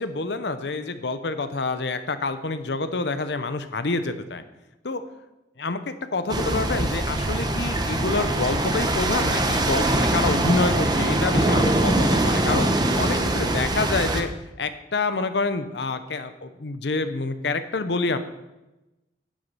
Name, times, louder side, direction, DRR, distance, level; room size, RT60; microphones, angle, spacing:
voice 1, 0.0-4.4 4.8-5.0 5.6-12.7 13.0-14.3 14.6-18.2, left 3 dB, 65° left, 10 dB, 0.7 m, -27 dB
sound 1, 6.3-14.2, right 1 dB, 20° right, 0.9 m, -23 dB
10.5 x 8.0 x 5.6 m, 1.0 s
head